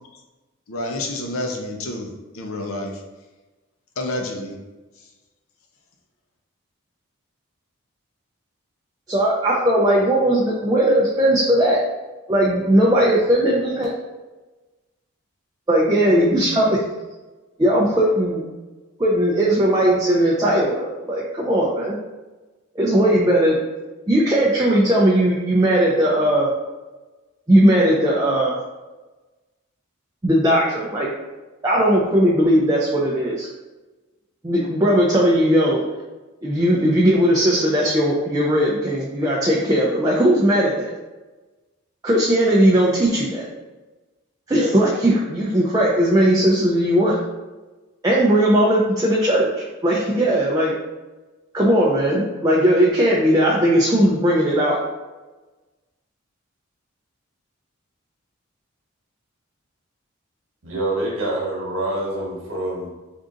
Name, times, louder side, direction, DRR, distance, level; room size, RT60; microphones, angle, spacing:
voice 1, 0.7-3.0 4.0-4.5 5.0-5.1, left 1 dB, 90° left, 2 dB, 0.6 m, -29 dB
voice 2, 9.1-11.8 12.3-13.9 15.7-16.8 17.6-18.4 19.0-22.0 22.8-23.6 24.1-26.5 27.5-28.6 30.2-31.1 31.6-33.5 34.4-35.8 36.4-40.9 42.0-43.5 44.5-47.2 48.0-50.7 51.5-54.8, right 1 dB, 15° right, -5 dB, 0.4 m, -18 dB
voice 3, 60.6-62.9, right 1 dB, 75° right, -3 dB, 1.1 m, -26 dB
3.6 x 2.5 x 3.8 m, 1.2 s
head